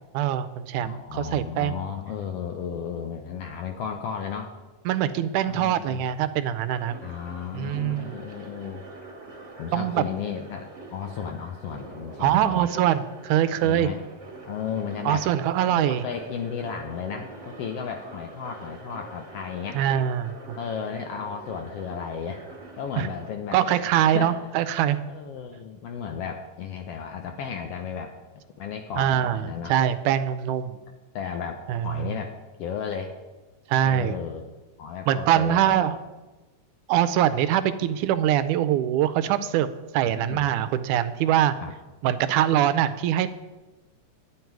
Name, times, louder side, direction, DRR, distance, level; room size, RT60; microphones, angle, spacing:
voice 1, 0.1-1.8 4.9-7.0 7.5-8.1 9.7-10.1 12.2-13.9 15.1-16.0 19.7-20.6 23.0-23.1 23.5-25.0 29.0-29.4 29.7-30.8 31.7-32.1 33.7-34.1 35.1-36.0 36.9-39.7 39.9-41.6 42.0-43.3, right 11 dB, 90° right, 13 dB, 2.1 m, -23 dB
voice 2, 0.8-4.5 5.5-6.0 7.0-8.8 9.6-12.7 13.6-14.0 14.4-15.3 15.7-19.8 20.6-22.4 22.8-23.6 24.0-24.4 25.1-28.1 28.6-29.7 31.1-33.1 33.8-35.8 40.1-40.5 41.6-41.7, left 7 dB, 75° left, 4 dB, 1.5 m, -34 dB
sound 1, 6.7-23.3, right 3 dB, 30° right, 1.5 m, -44 dB
10.5 x 9.6 x 4.6 m, 1.1 s
omnidirectional pair, 3.4 m